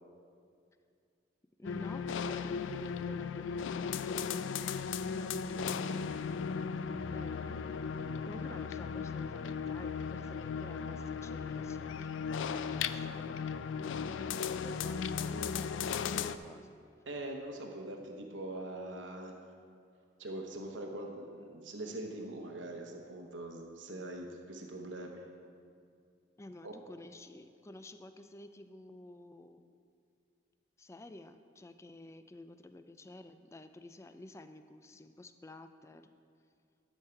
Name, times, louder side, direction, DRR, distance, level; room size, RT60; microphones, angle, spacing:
sound 1, 1.6-16.4, left 6 dB, 90° left, 0.3 m, -36 dB
voice 1, 1.6-6.0 7.1-12.1 12.4-16.8 26.4-29.6 30.8-36.1, left 2 dB, 15° left, 9 dB, 0.3 m, -51 dB
voice 2, 17.1-19.3 20.2-25.2 26.6-26.8, right 1 dB, 85° right, 2 dB, 0.9 m, -42 dB
12.0 x 6.4 x 4.4 m, 2.3 s
head